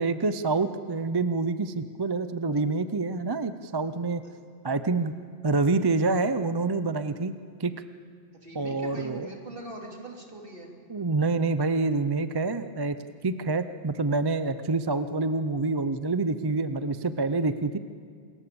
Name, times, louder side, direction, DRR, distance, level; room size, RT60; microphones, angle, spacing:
voice 1, 0.0-4.2 4.6-5.1 5.4-7.3 7.6-7.7 8.5-9.3 10.9-13.0 13.2-17.8, right 3 dB, 30° right, 11 dB, 0.5 m, -27 dB
voice 2, 8.4-10.7, right 1 dB, 50° right, 0 dB, 3.5 m, -41 dB
27.0 x 21.5 x 7.0 m, 2.1 s
omnidirectional pair, 1.2 m